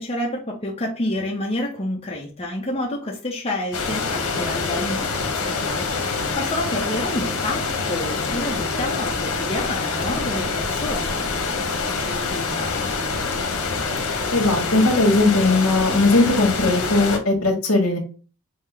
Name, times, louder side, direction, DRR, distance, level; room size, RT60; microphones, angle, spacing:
voice 1, 0.0-13.0, left 1 dB, 30° left, -1 dB, 0.7 m, -29 dB
sound 1, 3.7-17.2, left 4 dB, 85° left, 1.0 m, -25 dB
voice 2, 14.3-18.0, left 2 dB, 70° left, 2 dB, 1.6 m, -18 dB
5.5 x 2.1 x 3.3 m, 0.36 s
head